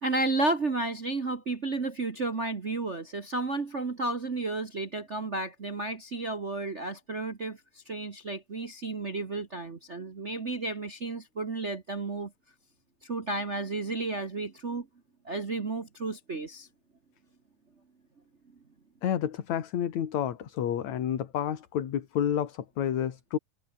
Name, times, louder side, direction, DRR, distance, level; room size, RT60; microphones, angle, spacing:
voice 1, 0.0-12.3 13.0-14.9 15.2-16.7, right 2 dB, 55° right, 0.8 m, -32 dB
voice 2, 19.0-23.4, left 9 dB, 65° left, 3.1 m, -30 dB
omnidirectional pair, 3.6 m